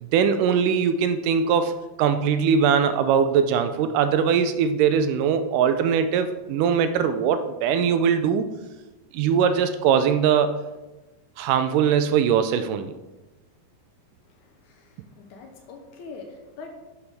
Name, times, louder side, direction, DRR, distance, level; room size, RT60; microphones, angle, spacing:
voice 1, 0.0-8.4 9.1-10.5 11.4-12.9, right 7 dB, 80° right, 10 dB, 2.0 m, -21 dB
voice 2, 14.3-16.7, left 4 dB, 70° left, 3 dB, 2.1 m, -43 dB
10.5 x 7.1 x 3.4 m, 1.1 s
omnidirectional pair, 3.9 m